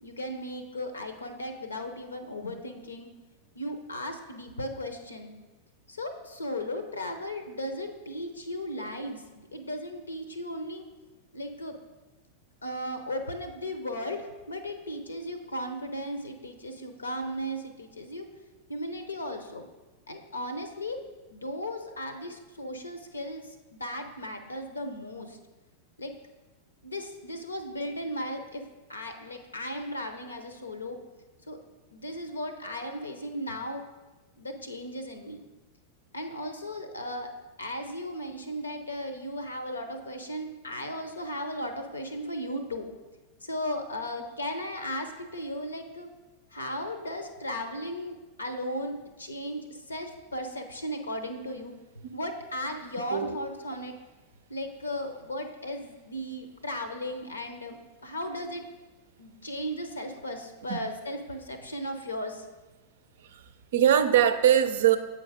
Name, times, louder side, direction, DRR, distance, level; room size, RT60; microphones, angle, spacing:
voice 1, 0.0-3.1 3.6-5.3 5.9-10.8 11.3-11.8 12.6-18.3 18.7-19.6 20.1-21.0 21.3-25.4 26.0-26.1 26.8-28.6 28.9-31.0 31.5-31.6 31.9-33.9 34.4-35.4 36.1-37.3 37.6-42.9 43.4-46.1 46.5-51.7 52.1-53.9 54.5-57.8 58.0-58.6 59.2-62.4, equal, 75° left, 7 dB, 0.7 m, -36 dB
voice 2, 63.7-65.0, right 10 dB, 60° right, 10 dB, 0.5 m, -21 dB
7.7 x 4.5 x 5.0 m, 1.2 s
figure-of-eight pair, 90°, 0 cm